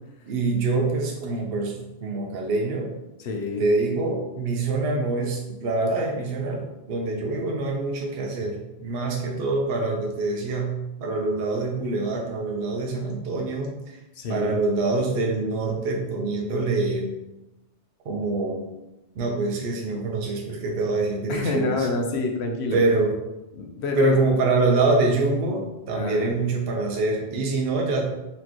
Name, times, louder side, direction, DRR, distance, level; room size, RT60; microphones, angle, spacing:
voice 1, 0.3-2.9 3.6-14.0 14.3-17.2 18.1-18.7 19.2-21.9 22.7-23.2 24.0-28.1, right 3 dB, 65° right, 1 dB, 0.8 m, -25 dB
voice 2, 3.2-3.6 14.1-14.6 21.3-22.8 23.6-24.2 25.9-26.3, left 3 dB, 70° left, 2 dB, 0.9 m, -27 dB
4.4 x 3.1 x 2.9 m, 0.96 s
omnidirectional pair, 1.2 m